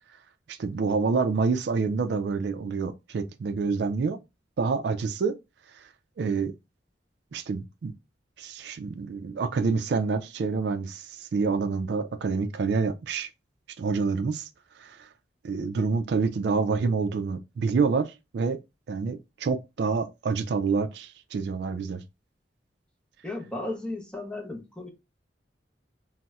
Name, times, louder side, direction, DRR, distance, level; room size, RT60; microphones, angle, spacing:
voice 1, 0.5-4.2 4.6-5.4 6.2-6.5 7.3-7.9 8.4-13.3 13.8-14.5 14.8-15.1 15.4-18.6 18.9-22.0, right 4 dB, 65° right, 0.3 m, -27 dB
voice 2, 23.2-24.9, left 2 dB, 5° left, 0.6 m, -35 dB
4.0 x 2.0 x 2.2 m
head